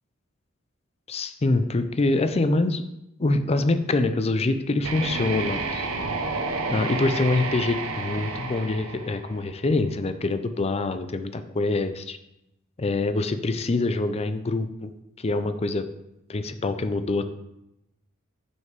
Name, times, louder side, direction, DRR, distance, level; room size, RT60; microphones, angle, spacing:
voice 1, 1.1-2.8 3.2-5.9 6.7-12.2 12.8-14.9 15.2-15.9 16.3-17.2, left 2 dB, 30° left, 11 dB, 0.5 m, -25 dB
sound 1, 4.8-9.7, right 3 dB, 85° right, 0.9 m, -30 dB
6.4 x 5.4 x 5.2 m, 0.87 s
head